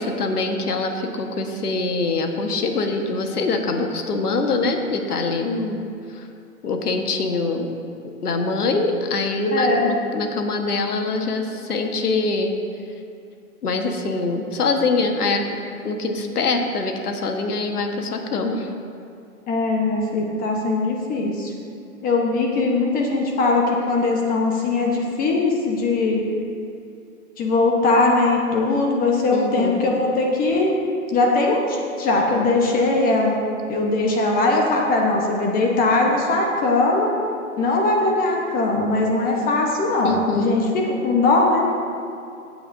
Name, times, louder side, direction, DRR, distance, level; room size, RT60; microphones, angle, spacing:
voice 1, 0.0-5.8 6.1-6.3 6.6-7.7 8.2-12.5 13.6-15.4 15.8-18.7 29.3-29.8 40.0-40.6, left 3 dB, 80° left, 4 dB, 1.5 m, -24 dB
voice 2, 9.5-9.9 19.5-21.5 22.0-26.2 27.4-30.8 31.1-33.4 33.7-37.1 37.6-41.7, left 2 dB, 20° left, 0 dB, 1.0 m, -20 dB
16.0 x 8.6 x 2.7 m, 2.6 s
hypercardioid pair, 130°, 45 cm